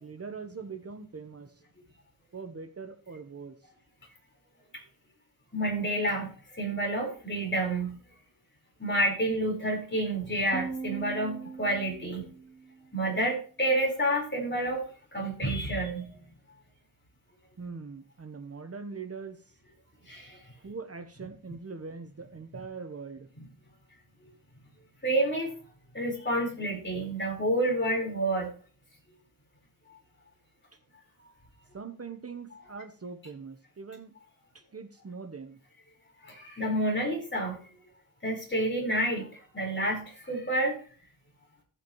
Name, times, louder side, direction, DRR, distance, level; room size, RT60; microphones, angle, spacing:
voice 1, 0.0-1.5 2.3-3.5 17.6-19.4 20.6-23.3 31.7-34.1 34.5-35.6, right 5 dB, 40° right, 7 dB, 1.0 m, -42 dB
voice 2, 5.5-8.0 8.8-12.3 12.9-14.9 15.1-16.1 20.1-20.4 23.4-23.5 25.0-25.6 25.9-28.5 36.2-37.6 38.2-39.3 39.5-40.8, right 1 dB, 30° left, 0 dB, 4.6 m, -29 dB
sound 1, 10.5-13.0, right 4 dB, 10° right, 2.1 m, -40 dB
14.5 x 8.2 x 3.1 m, 0.42 s
wide cardioid pair, 90°, 36 cm